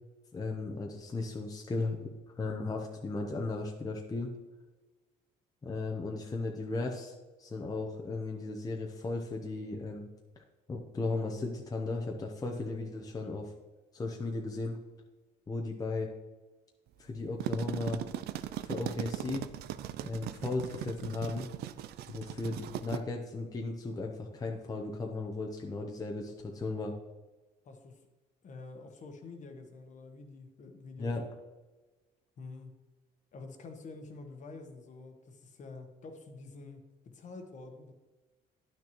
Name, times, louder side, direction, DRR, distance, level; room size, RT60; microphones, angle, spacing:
voice 1, 0.3-2.1 2.4-4.3 5.6-7.1 7.4-10.1 10.7-13.5 13.9-14.7 15.5-16.1 17.0-18.0 18.6-19.4 20.0-21.5 22.1-26.9 31.0-31.3, left 3 dB, 20° left, 0 dB, 0.8 m, -36 dB
sound 1, 17.2-23.0, right 12 dB, 70° right, 0.4 m, -39 dB
voice 2, 27.6-28.0 28.4-31.2 32.4-32.8 33.3-37.9, left 3 dB, 45° left, 5 dB, 1.1 m, -48 dB
10.0 x 6.1 x 3.0 m, 1.2 s
cardioid pair, 110°, 17 cm